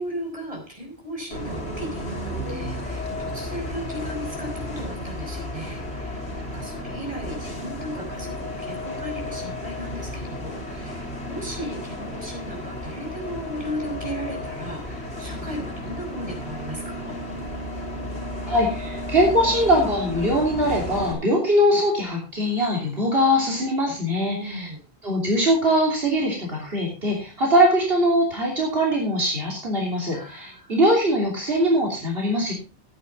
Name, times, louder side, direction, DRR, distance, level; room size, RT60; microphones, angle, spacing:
voice 1, 0.0-17.2 24.3-24.8 30.1-30.7, equal, 35° right, 0 dB, 5.6 m, -36 dB
Bus, 1.3-21.1, left 1 dB, 90° left, 3.9 m, -33 dB
voice 2, 18.5-24.7 25.0-32.5, equal, 65° right, -2 dB, 3.4 m, -22 dB
14.5 x 9.4 x 4.0 m, 0.32 s
omnidirectional pair, 1.1 m